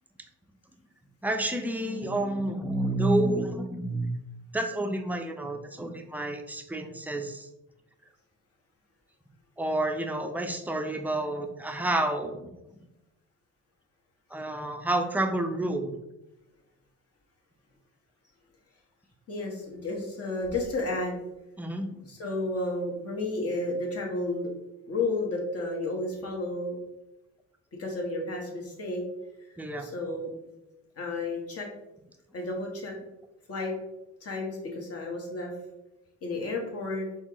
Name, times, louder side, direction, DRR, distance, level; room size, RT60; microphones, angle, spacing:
voice 1, 1.2-4.1 4.5-7.5 9.6-12.5 14.3-15.9 21.6-21.9 29.6-29.9, right 1 dB, 5° right, 5 dB, 0.5 m, -29 dB
voice 2, 19.3-21.2 22.1-24.5 24.9-26.8 27.8-29.0 29.8-30.3 31.0-31.7 32.3-32.9 33.5-33.7 34.2-35.5 36.2-37.1, left 2 dB, 50° left, 0 dB, 1.3 m, -32 dB
4.2 x 3.5 x 3.0 m, 0.93 s
cardioid pair, 90°, 30 cm